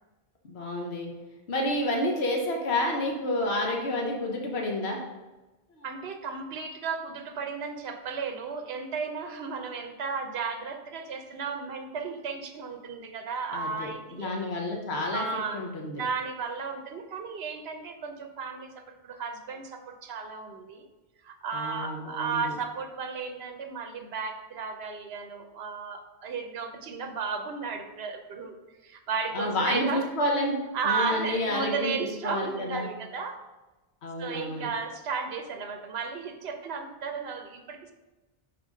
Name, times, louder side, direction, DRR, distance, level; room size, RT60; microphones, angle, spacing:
voice 1, 0.4-1.1 1.5-5.0 5.7-5.8 13.5-13.9 14.2-15.2 15.5-16.0 21.5-22.5 29.3-30.6 30.8-32.9 34.0-34.7, left 1 dB, 75° left, 1 dB, 1.3 m, -29 dB
voice 2, 5.8-14.3 15.1-15.6 16.0-20.9 21.2-28.6 28.8-30.1 30.7-33.4 34.2-37.9, right 5 dB, 75° right, 6 dB, 1.0 m, -34 dB
6.1 x 4.4 x 5.0 m, 1.1 s
omnidirectional pair, 1.1 m